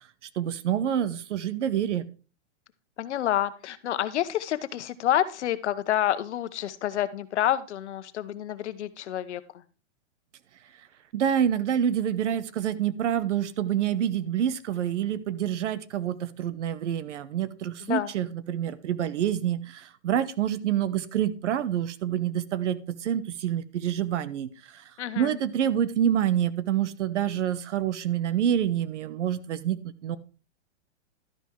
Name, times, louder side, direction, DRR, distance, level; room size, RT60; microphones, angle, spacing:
voice 1, 0.4-2.0 11.1-24.8 25.1-30.2, right 10 dB, 75° right, 15 dB, 1.1 m, -27 dB
voice 2, 3.0-9.4 17.9-18.1 25.0-25.4, left 12 dB, 70° left, 12 dB, 1.1 m, -28 dB
12.0 x 5.6 x 4.6 m, 0.35 s
hypercardioid pair, 160°, 36 cm